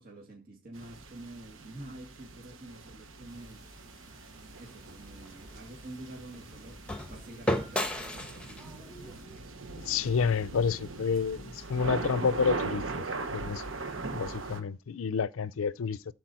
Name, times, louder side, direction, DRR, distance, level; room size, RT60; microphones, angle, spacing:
voice 1, 0.0-3.6 4.6-9.3, right 1 dB, 50° right, 2.2 m, -48 dB
sound 1, 0.7-14.6, right 3 dB, 75° right, 1.1 m, -40 dB
sound 2, 3.3-9.3, right 1 dB, 20° right, 2.5 m, -57 dB
sound 3, 4.7-10.8, left 1 dB, 5° left, 1.1 m, -37 dB
voice 2, 9.8-13.0 13.3-13.6 14.1-16.1, left 5 dB, 90° left, 0.5 m, -29 dB
14.0 x 4.7 x 4.3 m
head